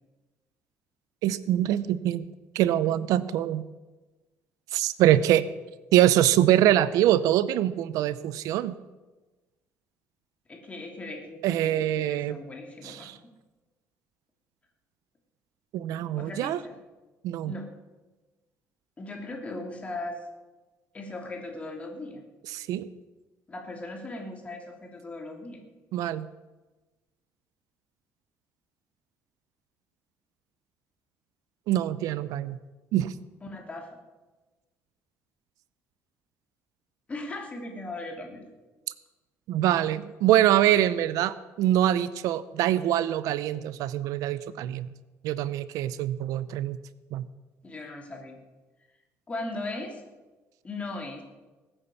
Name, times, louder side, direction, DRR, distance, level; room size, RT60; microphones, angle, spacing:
voice 1, 1.2-2.3 2.5-3.6 4.7-5.4 5.9-8.7 11.4-12.4 12.8-13.2 15.7-16.6 17.2-17.5 22.5-22.9 25.9-26.3 31.7-32.6 32.9-33.1 39.5-44.9 45.2-46.8 47.1-47.3, right 12 dB, 85° right, 16 dB, 0.7 m, -24 dB
voice 2, 10.5-13.1 16.2-16.8 17.5-17.7 19.0-20.2 20.9-22.2 23.5-25.6 33.4-33.9 37.1-38.5 47.6-48.4 49.3-50.0 50.6-51.2, left 2 dB, 20° left, 2 dB, 3.1 m, -38 dB
20.0 x 8.9 x 7.1 m, 1.2 s
cardioid pair, 130°, 6 cm